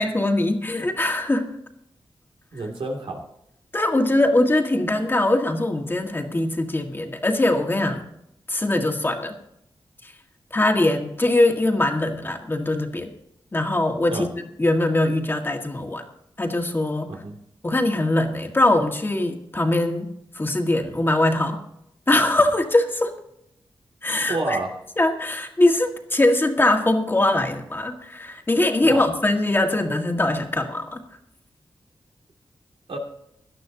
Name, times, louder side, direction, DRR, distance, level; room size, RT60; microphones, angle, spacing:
voice 1, 0.0-1.5 3.7-8.0 8.5-9.3 10.0-10.1 10.5-13.1 13.5-16.0 16.4-17.1 17.6-20.1 20.4-21.6 22.1-23.1 24.0-24.6 25.0-31.0, left 2 dB, 25° left, 3 dB, 1.7 m, -22 dB
voice 2, 2.5-3.2 14.1-14.3 17.1-17.3 24.3-24.7 28.8-29.1 32.9-33.0, right 2 dB, 90° right, 1 dB, 2.7 m, -29 dB
17.5 x 12.0 x 2.9 m, 0.77 s
wide cardioid pair, 120°, 9 cm